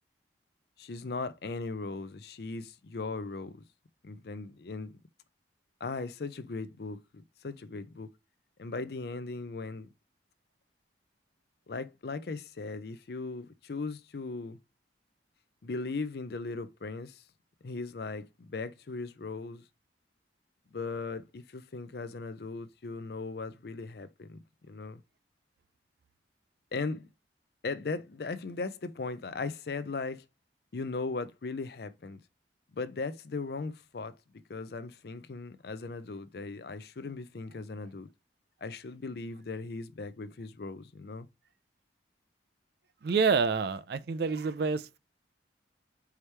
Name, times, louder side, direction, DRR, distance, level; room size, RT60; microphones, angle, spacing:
voice 1, 0.8-3.5 4.0-4.9 5.8-7.0 7.4-8.1 8.6-9.9 11.7-14.6 15.6-17.2 17.6-19.6 20.7-24.4 24.7-25.0 26.7-27.1 27.6-30.2 30.7-32.2 32.7-34.2 34.5-38.1 38.6-41.3, left 3 dB, 55° left, 0.5 m, -38 dB
voice 2, 43.0-45.0, right 5 dB, 55° right, 0.4 m, -28 dB
4.7 x 3.0 x 3.3 m
head